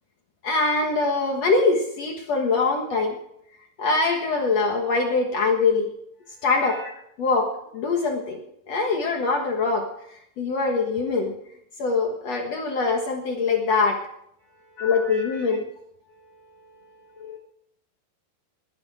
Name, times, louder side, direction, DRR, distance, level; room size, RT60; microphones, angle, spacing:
voice 1, 0.4-3.2 3.8-5.9 6.4-6.9 7.2-8.4 8.7-11.3 11.8-14.0 14.8-15.7 17.2-17.4, left 4 dB, 60° left, 2 dB, 1.8 m, -23 dB
voice 2, 14.4-14.9 16.0-17.4, right 2 dB, 10° right, -5 dB, 3.5 m, -56 dB
19.0 x 10.5 x 4.9 m, 0.74 s
omnidirectional pair, 4.9 m